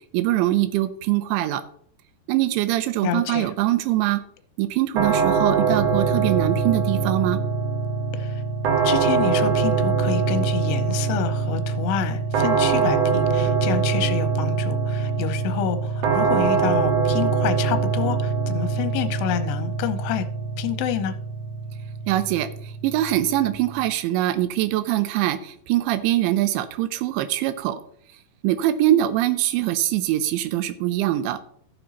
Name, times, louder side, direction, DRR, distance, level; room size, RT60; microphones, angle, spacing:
voice 1, 0.1-1.6 2.3-4.2 4.6-7.4 22.1-27.8 28.4-31.4, right 14 dB, 85° right, 3.0 m, -23 dB
voice 2, 3.0-3.5 8.1-8.4 8.8-20.3 20.6-21.1, left 10 dB, 80° left, 2.8 m, -28 dB
sound 1, 5.0-23.9, right 5 dB, 65° right, 2.0 m, -23 dB
15.0 x 7.0 x 2.9 m
omnidirectional pair, 5.1 m